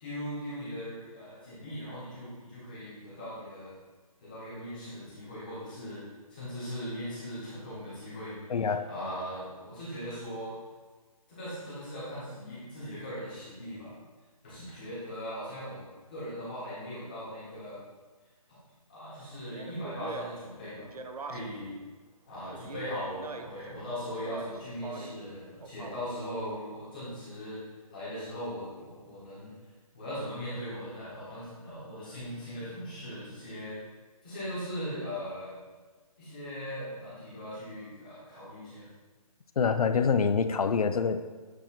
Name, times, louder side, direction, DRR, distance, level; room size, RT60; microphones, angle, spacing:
voice 1, 0.0-3.7 4.2-6.0 6.3-10.5 11.3-13.9 14.4-15.8 16.1-17.8 18.5-18.6 18.9-20.9 21.2-21.8 22.2-27.6 27.9-29.5 29.9-33.8 34.2-35.6 36.2-38.9, equal, 15° left, -10 dB, 1.4 m, -39 dB
voice 2, 8.5-8.9 39.6-41.2, left 5 dB, 80° left, 11 dB, 0.5 m, -26 dB
Speech, 19.5-21.7 22.5-23.7 24.1-25.2 25.6-26.3, right 4 dB, 85° right, 0.6 m, -43 dB
8.2 x 2.9 x 4.3 m, 1.3 s
hypercardioid pair, 180°, 19 cm